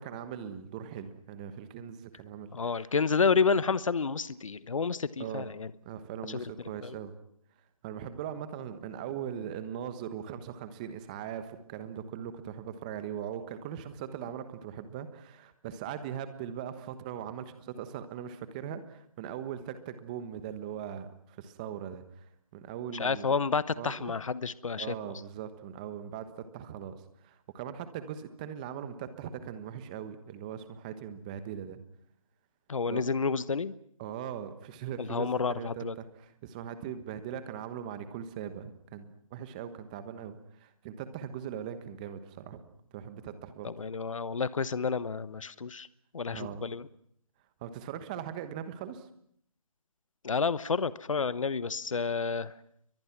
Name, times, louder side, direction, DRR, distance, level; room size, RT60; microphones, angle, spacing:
voice 1, 0.0-2.9 5.2-5.5 5.8-7.1 7.8-22.3 22.5-23.3 23.8-24.1 24.8-31.8 32.9-33.0 34.0-42.6 42.9-43.7 46.3-46.7 47.6-49.1, right 9 dB, 15° right, 11 dB, 1.2 m, -40 dB
voice 2, 2.5-5.7 6.3-6.5 6.8-7.0 22.9-24.9 32.7-33.7 35.0-35.9 43.6-45.9 46.1-46.9 50.2-52.5, left 5 dB, 60° left, 16 dB, 1.1 m, -30 dB
29.5 x 23.0 x 6.0 m, 0.68 s
figure-of-eight pair, 165°, 19 cm